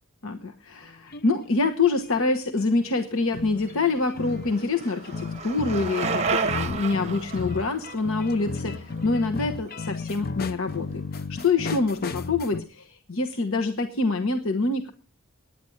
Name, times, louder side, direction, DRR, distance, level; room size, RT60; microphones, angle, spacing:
voice 1, 0.2-14.9, left 3 dB, 65° left, 6 dB, 1.1 m, -26 dB
sound 1, 0.8-1.4 2.0-12.6, left 4 dB, 45° left, 0.6 m, -35 dB
Bicycle, 3.7-9.7, right 5 dB, 30° right, 0.8 m, -32 dB
10.0 x 9.6 x 7.9 m, 0.37 s
head